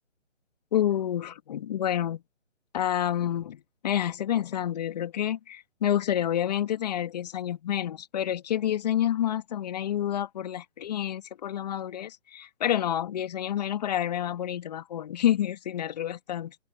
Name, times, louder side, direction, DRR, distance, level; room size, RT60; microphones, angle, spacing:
voice 1, 0.7-2.2 2.7-16.6, left 11 dB, 35° left, 1.9 m, -28 dB
figure-of-eight pair, 150°, 37 cm